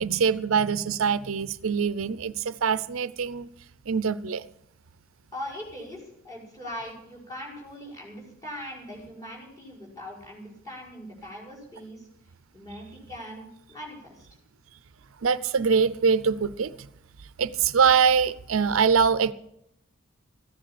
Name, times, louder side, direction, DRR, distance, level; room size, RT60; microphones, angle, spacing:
voice 1, 0.0-3.5 3.9-4.4 15.2-16.7 17.4-19.3, right 6 dB, 80° right, 0.6 m, -23 dB
voice 2, 5.3-12.1 12.5-14.3, equal, 15° left, 5.5 m, -40 dB
14.5 x 10.0 x 7.6 m
head